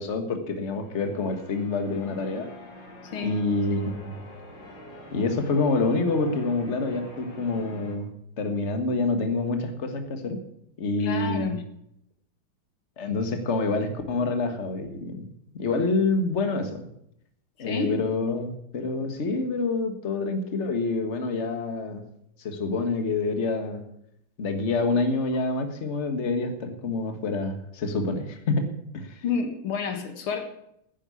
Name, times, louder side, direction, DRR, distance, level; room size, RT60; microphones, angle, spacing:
voice 1, 0.0-2.5 3.2-4.1 5.1-8.1 8.4-10.4 10.8-11.5 13.0-15.3 15.5-16.8 17.6-22.0 22.4-23.8 24.4-28.7 28.9-29.2, left 3 dB, 35° left, 7 dB, 1.7 m, -27 dB
Church bell, 0.6-8.0, left 1 dB, 60° left, 3.6 m, -45 dB
voice 2, 11.0-11.6 17.6-18.0 29.2-30.4, left 5 dB, 85° left, 6 dB, 2.5 m, -29 dB
10.0 x 9.9 x 8.4 m, 0.75 s
omnidirectional pair, 2.3 m